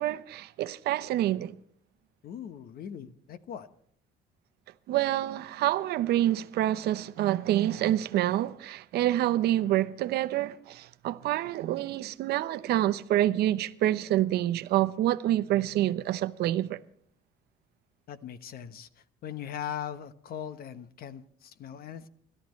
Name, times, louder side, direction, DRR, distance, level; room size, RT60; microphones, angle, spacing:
voice 1, 0.0-1.6 4.9-16.8, right 13 dB, 75° right, 0.8 m, -27 dB
voice 2, 2.2-3.7 18.1-22.1, left 9 dB, 65° left, 1.2 m, -40 dB
28.0 x 13.0 x 3.2 m
cardioid pair, 110°, 17 cm